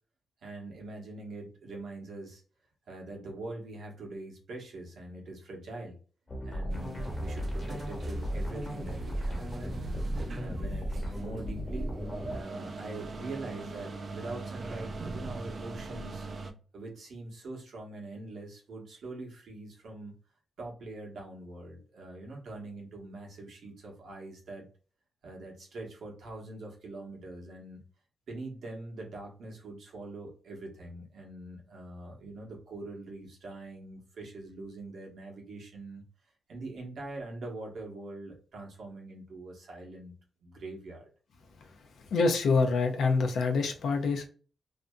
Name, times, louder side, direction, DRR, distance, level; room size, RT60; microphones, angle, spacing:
voice 1, 0.4-2.4 2.9-5.9 6.4-10.0 10.4-11.9 12.3-16.3 16.7-20.2 20.6-24.7 25.2-27.8 28.3-36.0 36.5-40.1 40.4-41.1, right 2 dB, 80° right, 0 dB, 1.0 m, -43 dB
sound 1, 6.3-12.4, equal, 30° left, 1.1 m, -36 dB
sound 2, 6.7-16.5, right 2 dB, 45° right, 0.4 m, -40 dB
voice 2, 42.1-44.2, left 4 dB, 85° left, 5 dB, 0.5 m, -26 dB
2.6 x 2.6 x 2.2 m, 0.38 s
wide cardioid pair, 110°, 0 cm